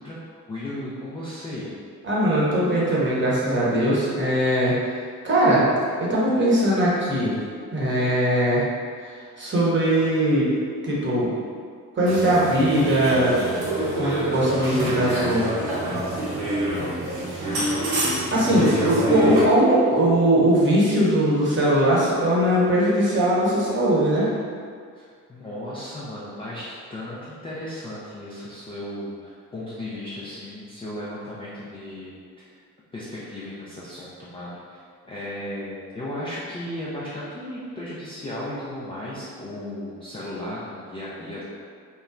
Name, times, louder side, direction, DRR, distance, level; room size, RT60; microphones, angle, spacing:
voice 1, 0.0-1.7 17.3-17.7 24.9-32.5 32.9-41.4, left 1 dB, 10° left, -9 dB, 0.4 m, -35 dB
voice 2, 2.0-4.7 5.2-5.6 6.0-7.3 7.7-8.6 9.4-10.5 10.8-11.3 11.9-13.3 14.0-15.4 17.3-17.4 18.3-24.3, right 1 dB, 25° right, -7 dB, 0.9 m, -20 dB
sound 1, 12.0-19.4, right 1 dB, 55° right, 0.8 m, -26 dB
2.9 x 2.0 x 2.4 m, 2.1 s
hypercardioid pair, 50°, 48 cm